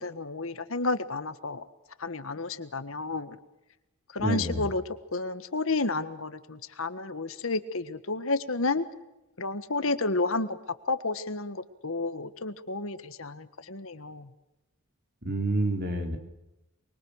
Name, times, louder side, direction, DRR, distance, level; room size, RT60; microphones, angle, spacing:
voice 1, 0.0-1.6 2.0-3.4 4.1-4.8 5.1-8.9 9.4-10.6 10.9-14.3, left 3 dB, 65° left, 12 dB, 1.5 m, -31 dB
voice 2, 4.2-4.7 15.2-16.2, right 2 dB, 45° right, 5 dB, 3.9 m, -28 dB
24.5 x 24.0 x 6.5 m, 0.94 s
head